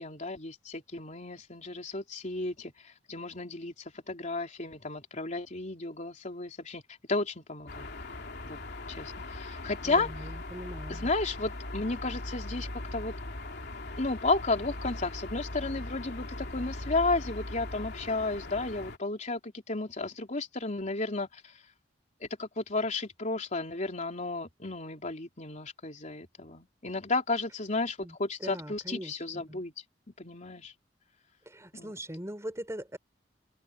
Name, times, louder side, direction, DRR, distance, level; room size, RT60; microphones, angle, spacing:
voice 1, 0.0-6.8 7.1-7.9 8.4-8.6 8.9-10.3 10.9-13.1 14.0-21.6 22.2-29.7 30.2-30.7 31.7-31.9, left 3 dB, 40° left, 3.6 m, -33 dB
sound 1, 7.7-19.0, left 2 dB, 60° left, 3.0 m, -40 dB
voice 2, 9.8-11.1 28.0-29.2 29.5-29.6 31.4-33.0, right 1 dB, 15° right, 4.7 m, -41 dB
open air
head